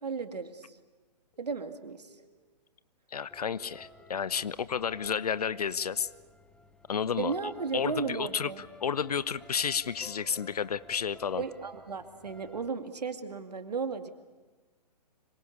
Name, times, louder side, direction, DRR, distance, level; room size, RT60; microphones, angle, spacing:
voice 1, 0.0-0.8 1.4-2.1 7.2-8.6 11.4-14.1, right 5 dB, 70° right, 8 dB, 2.3 m, -35 dB
sound 1, 1.9-2.3 3.3-4.3 5.3-6.3 7.3-8.3 9.3-10.3 11.2-12.2 13.2-13.3, equal, 40° left, 4.2 m, -63 dB
voice 2, 3.1-6.1 6.9-7.3 7.7-11.4, left 7 dB, 65° left, 17 dB, 0.9 m, -31 dB
sound 2, 3.3-12.7, left 2 dB, 5° left, 1.2 m, -54 dB
26.0 x 23.5 x 8.4 m, 1.3 s
figure-of-eight pair, 125°, 21 cm